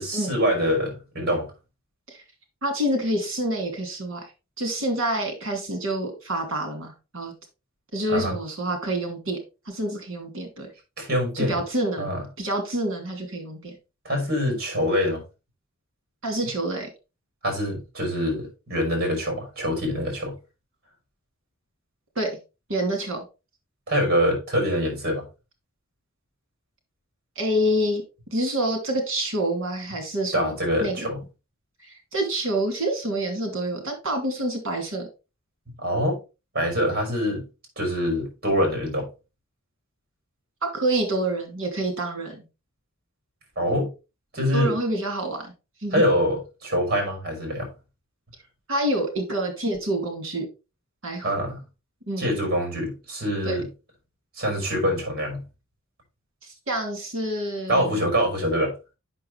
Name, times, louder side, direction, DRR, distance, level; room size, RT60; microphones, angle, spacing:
voice 1, 0.0-1.5 8.1-8.4 11.0-11.6 12.0-12.2 14.0-15.2 17.4-20.3 23.9-25.3 30.3-31.2 35.8-36.2 36.5-37.5 37.8-39.1 43.6-43.9 44.3-44.7 45.9-47.7 51.2-51.6 52.2-53.7 54.4-55.4 57.7-58.7, equal, 50° right, 5.5 m, -25 dB
voice 2, 2.6-4.3 4.6-7.3 7.9-9.4 9.7-10.7 11.3-12.1 12.4-13.8 16.2-16.9 22.1-22.4 22.7-23.2 27.4-28.0 28.3-30.6 30.8-31.0 31.8-35.1 40.6-42.4 44.5-45.5 45.8-46.0 48.7-50.4 51.0-51.3 52.1-52.3 53.4-53.6 56.4-58.0, right 1 dB, 70° right, 3.0 m, -27 dB
8.3 x 6.5 x 3.3 m
head